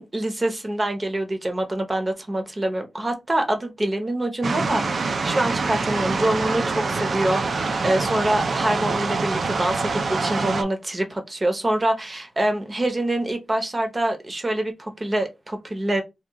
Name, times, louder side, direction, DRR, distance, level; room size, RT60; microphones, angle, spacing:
voice 1, 0.0-16.0, right 1 dB, 25° right, 0.7 m, -25 dB
sound 1, 4.4-10.6, right 4 dB, 55° right, 0.4 m, -25 dB
2.8 x 2.3 x 3.4 m
wide cardioid pair, 130°, 0 cm